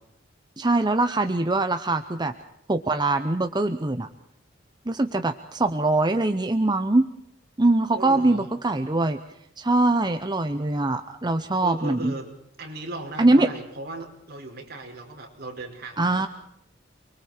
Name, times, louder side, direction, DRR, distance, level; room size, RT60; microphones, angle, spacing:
voice 1, 0.6-2.3 2.7-4.1 4.9-7.1 7.6-9.2 9.6-12.1 13.2-13.5 16.0-16.3, right 2 dB, 20° right, 8 dB, 0.8 m, -22 dB
voice 2, 7.9-8.5 11.6-12.3 12.6-16.3, right 2 dB, 55° right, 1 dB, 5.3 m, -37 dB
29.5 x 23.0 x 4.4 m, 0.77 s
head